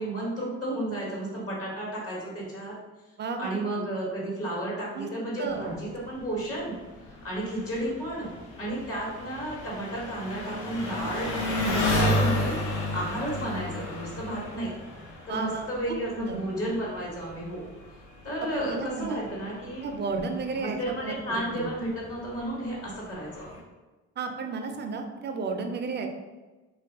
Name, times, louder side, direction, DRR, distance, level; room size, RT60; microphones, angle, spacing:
voice 1, 0.0-2.7 3.4-6.7 7.2-8.3 8.6-12.6 12.9-14.7 15.3-17.7 18.2-19.9 20.5-23.6, right 1 dB, 50° left, -4 dB, 1.1 m, -32 dB
voice 2, 3.2-3.6 4.9-5.1 5.4-5.8 15.3-15.7 16.1-16.4 18.5-19.2 19.8-21.7 24.2-26.1, right 4 dB, 35° right, 5 dB, 0.4 m, -33 dB
Engine, 5.5-23.6, left 1 dB, 75° left, 0.7 m, -34 dB
2.3 x 2.2 x 3.4 m, 1.2 s
cardioid pair, 90°, 30 cm